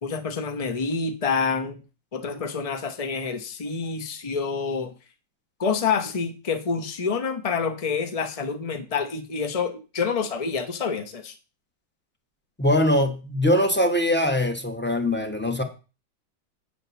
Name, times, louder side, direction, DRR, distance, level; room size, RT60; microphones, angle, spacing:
voice 1, 0.0-1.8 2.1-4.9 5.6-11.3, left 5 dB, 60° left, 8 dB, 0.3 m, -27 dB
voice 2, 12.6-15.6, left 1 dB, 10° left, 6 dB, 0.7 m, -22 dB
8.8 x 4.4 x 6.9 m, 0.32 s
omnidirectional pair, 2.0 m